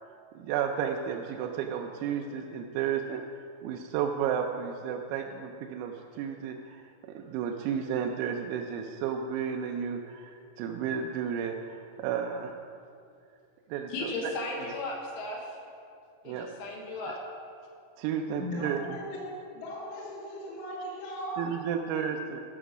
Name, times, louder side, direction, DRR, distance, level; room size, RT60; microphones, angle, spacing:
voice 1, 0.4-3.2 3.6-12.6 13.7-14.1 14.6-14.7 16.3-16.5 17.1-17.2 18.0-19.0 21.4-22.4, right 8 dB, 90° right, 2 dB, 3.3 m, -32 dB
voice 2, 13.9-15.4 16.3-17.2, left 2 dB, 75° left, -1 dB, 3.6 m, -35 dB
voice 3, 18.4-19.2 19.5-21.4, equal, 55° left, -8 dB, 2.8 m, -38 dB
13.5 x 6.0 x 6.1 m, 2.4 s
omnidirectional pair, 5.9 m